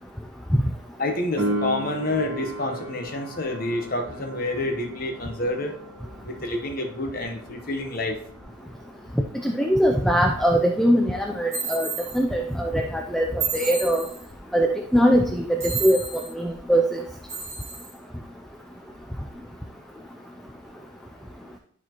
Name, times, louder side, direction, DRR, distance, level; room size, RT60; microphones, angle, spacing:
voice 1, 1.0-5.7 6.2-8.2, left 2 dB, 45° left, 4 dB, 1.0 m, -28 dB
Piano, 1.4-11.8 19.3-19.4, right 1 dB, 80° right, 1.3 m, -36 dB
voice 2, 9.4-11.9 12.1-14.1 14.5-16.0 16.3-17.0, equal, ahead, 2 dB, 0.3 m, -21 dB
sound 1, 11.5-12.2 13.4-14.3 15.6-16.3 17.3-17.9, right 5 dB, 15° right, 3.3 m, -31 dB
11.5 x 4.2 x 2.9 m, 0.64 s
head